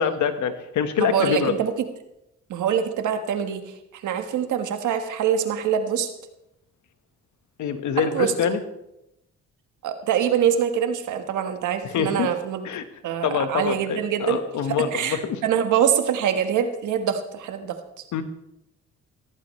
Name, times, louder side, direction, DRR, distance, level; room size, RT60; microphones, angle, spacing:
voice 1, 0.0-1.5 7.6-8.6 11.8-12.3 12.6-12.8 13.2-15.4 18.1-18.2, left 7 dB, 75° left, 9 dB, 1.4 m, -25 dB
voice 2, 1.0-1.9 2.5-6.1 8.0-8.6 9.8-12.7 13.0-17.8, right 8 dB, 80° right, 7 dB, 1.4 m, -24 dB
16.0 x 14.5 x 3.2 m, 0.85 s
cardioid pair, 90°, 30 cm